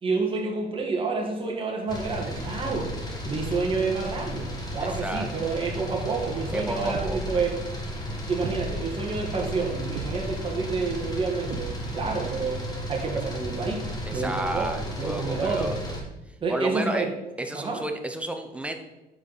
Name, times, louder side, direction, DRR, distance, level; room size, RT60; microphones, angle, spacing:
voice 1, 0.0-2.9 3.2-7.6 8.3-15.8 16.4-17.1 17.5-17.8, right 4 dB, 30° right, 0 dB, 1.8 m, -29 dB
sound 1, 1.9-16.0, equal, 25° left, 2.0 m, -34 dB
voice 2, 4.8-5.3 6.5-7.2 14.1-15.8 16.5-17.1 17.4-18.8, right 1 dB, 5° right, 5 dB, 0.9 m, -31 dB
sound 2, 6.9-7.5 8.4-9.0 9.9-10.6 11.5-12.1, right 2 dB, 60° right, 0.9 m, -37 dB
10.0 x 4.9 x 4.3 m, 1.0 s
cardioid pair, 110°, 17 cm